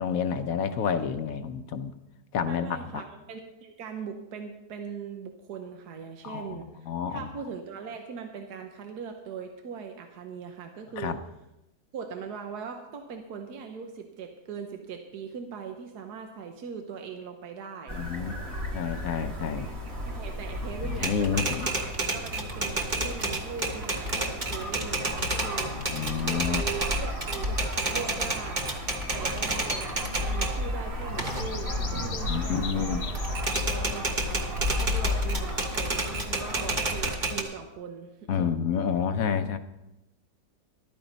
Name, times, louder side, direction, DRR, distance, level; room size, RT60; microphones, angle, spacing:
voice 1, 0.0-1.9 2.3-3.0 6.2-7.3 11.0-11.2 17.9-18.3 18.7-19.7 20.8-21.7 25.6-26.6 32.3-33.0 38.3-39.6, left 7 dB, 65° left, 10 dB, 1.0 m, -29 dB
voice 2, 2.5-11.2 11.9-18.0 20.1-25.8 26.2-28.6 29.1-38.5, right 6 dB, 80° right, 4 dB, 1.5 m, -40 dB
sound 1, 17.9-37.2, left 1 dB, 55° right, 2.5 m, -34 dB
Typewriter, 20.9-30.6 31.0-32.8 33.1-37.4, right 2 dB, 30° right, 1.4 m, -31 dB
sound 2, 27.1-28.7 30.2-30.8 31.1-33.7, left 6 dB, 45° left, 1.2 m, -42 dB
14.0 x 12.0 x 4.0 m, 0.94 s
omnidirectional pair, 1.7 m